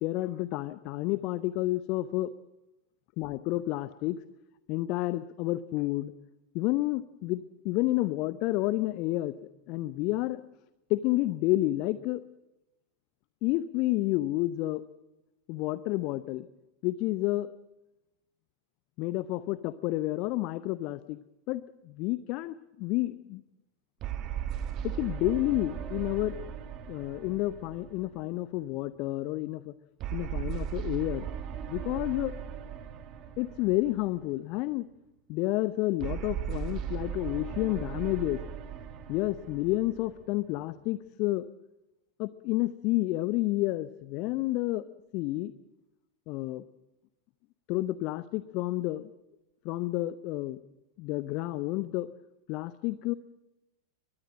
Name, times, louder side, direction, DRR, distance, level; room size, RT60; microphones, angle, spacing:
voice 1, 0.0-2.3 3.2-4.2 4.7-6.1 6.5-9.3 9.7-10.4 10.9-12.2 13.4-14.8 15.5-16.5 16.8-17.5 19.0-21.2 21.5-23.4 24.8-26.4 26.9-29.7 30.1-31.3 31.7-32.3 33.4-34.9 35.3-38.4 39.1-41.5 42.2-44.9 45.1-45.5 46.3-46.6 47.7-49.1 49.6-50.6 51.0-52.1 52.5-53.1, left 17 dB, 40° left, 15 dB, 0.8 m, -30 dB
sound 1, 24.0-28.6 30.0-34.4 36.0-40.6, right 9 dB, 35° right, 2.1 m, -37 dB
23.0 x 22.0 x 7.6 m, 0.97 s
figure-of-eight pair, 90°, 0 cm